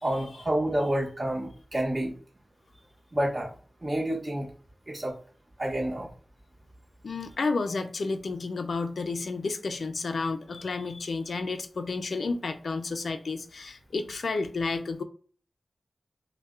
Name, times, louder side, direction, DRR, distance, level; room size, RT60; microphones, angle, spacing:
voice 1, 0.0-2.1 3.1-3.5 3.8-4.5 4.9-5.2 5.6-6.1, right 1 dB, 30° right, -5 dB, 1.4 m, -29 dB
voice 2, 7.0-15.0, left 3 dB, 75° left, 9 dB, 0.3 m, -31 dB
5.3 x 2.1 x 2.3 m, 0.42 s
wide cardioid pair, 105°, 0 cm